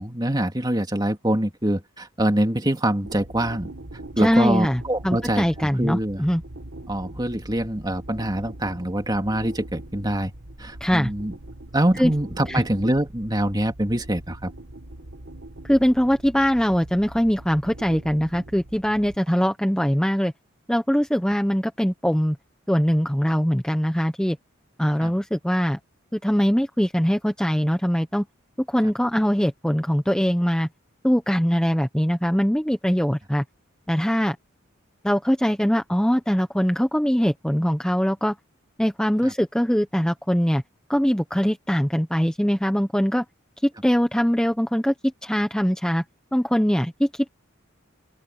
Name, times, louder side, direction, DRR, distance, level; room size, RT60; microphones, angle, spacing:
voice 1, 0.0-3.7 4.2-6.2 6.9-10.3 10.6-11.3 11.7-14.5 25.0-25.1 39.2-39.3, right 1 dB, 20° right, 2.8 m, -24 dB
sound 1, 3.0-19.2, right 1 dB, 60° right, 1.8 m, -42 dB
voice 2, 4.2-6.4 10.8-11.1 12.0-12.1 12.5-12.6 15.6-20.3 20.7-22.4 22.7-24.4 24.8-25.8 26.1-28.3 28.7-30.7 31.0-33.4 33.9-34.4 35.0-38.4 38.8-40.6 40.9-43.2 43.6-44.9 45.2-46.0 46.3-47.3, equal, 5° left, 1.0 m, -22 dB
open air
head